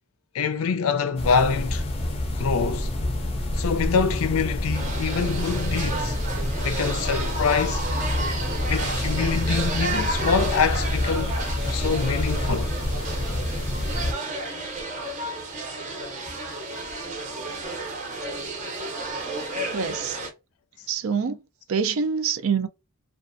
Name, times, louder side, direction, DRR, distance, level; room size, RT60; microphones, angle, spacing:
voice 1, 0.3-1.8 2.4-2.9 3.5-6.2 6.6-7.8 8.7-11.4 11.7-12.7, left 5 dB, 90° left, 0.4 m, -25 dB
sound 1, 1.2-14.1, left 1 dB, 30° left, 0.4 m, -27 dB
sound 2, 4.7-20.3, right 2 dB, 35° right, 0.6 m, -32 dB
voice 2, 19.7-20.2 20.9-21.4 21.7-22.7, right 6 dB, 85° right, 0.5 m, -25 dB
2.5 x 2.3 x 2.5 m
head